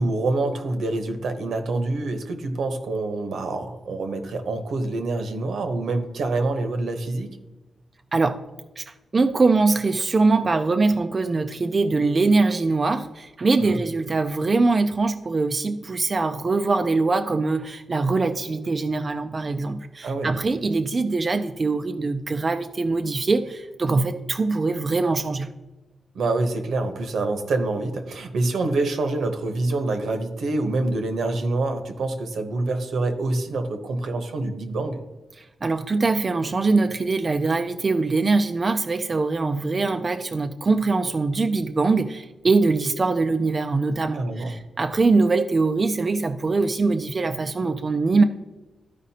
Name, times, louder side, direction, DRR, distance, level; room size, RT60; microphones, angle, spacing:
voice 1, 0.0-7.4 13.6-13.8 20.0-20.3 26.1-35.0 44.1-44.5, right 2 dB, 80° right, 6 dB, 1.0 m, -26 dB
voice 2, 8.1-8.4 8.8-25.5 35.4-48.2, right 3 dB, 30° right, 7 dB, 0.3 m, -22 dB
13.5 x 5.0 x 2.8 m, 1.1 s
wide cardioid pair, 155°, 0 cm